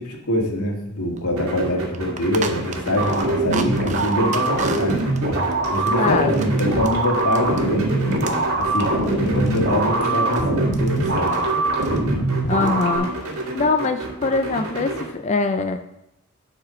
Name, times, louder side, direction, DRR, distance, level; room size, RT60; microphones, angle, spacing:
voice 1, 0.0-5.1 5.7-8.2 8.5-11.4, left 1 dB, 85° left, 1 dB, 1.9 m, -24 dB
cutting up a soda bottle, 1.2-1.3 1.5-1.6 1.9-7.7 8.0-10.5 10.7-11.5 11.8-12.0 12.5-12.9 13.1-13.9, right 5 dB, 35° right, 0.6 m, -36 dB
sound 1, 1.4-15.1, right 2 dB, 80° right, 2.1 m, -30 dB
sound 2, 3.0-13.0, right 2 dB, 50° right, 1.7 m, -22 dB
voice 2, 6.0-6.3 12.5-13.1 13.5-15.8, left 4 dB, 30° left, 7 dB, 0.4 m, -22 dB
7.3 x 5.0 x 6.2 m, 0.88 s
head